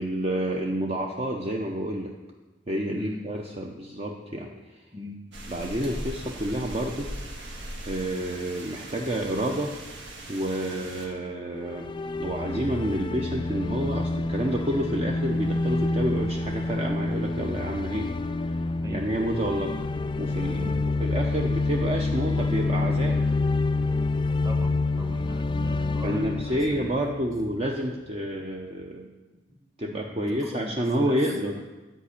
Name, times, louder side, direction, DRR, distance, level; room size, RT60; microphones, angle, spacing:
voice 1, 0.0-2.1 2.7-4.8 5.5-7.1 7.8-9.7 10.3-11.9 12.2-18.1 18.4-18.5 18.9-19.7 20.2-20.7 21.0-23.3 26.0-29.1 29.8-31.6, right 1 dB, 35° right, 0 dB, 0.7 m, -29 dB
sound 1, 5.3-11.1, right 1 dB, 75° right, 1.6 m, -39 dB
sound 2, 11.6-27.7, left 3 dB, 25° left, 0.3 m, -28 dB
voice 2, 18.7-19.1 20.6-20.8 24.4-26.9 30.1-31.6, left 1 dB, 20° right, 3 dB, 1.2 m, -39 dB
11.0 x 5.1 x 8.4 m, 1.2 s
head